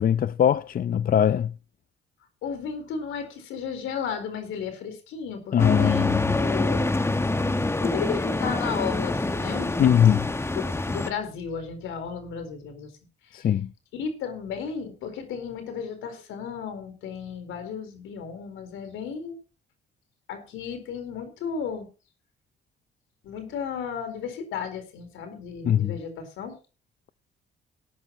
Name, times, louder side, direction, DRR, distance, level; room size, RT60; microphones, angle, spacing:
voice 1, 0.0-1.5 5.5-6.3 9.8-10.3 13.3-13.7 25.6-25.9, left 9 dB, 45° left, 0.5 m, -21 dB
voice 2, 2.4-7.0 7.8-10.0 10.5-12.9 13.3-13.5 13.9-19.4 20.3-21.9 23.2-26.6, left 6 dB, 90° left, 4.3 m, -34 dB
sound 1, 5.6-11.1, left 2 dB, 15° left, 1.1 m, -26 dB
18.0 x 11.5 x 3.0 m
cardioid pair, 90°, 20 cm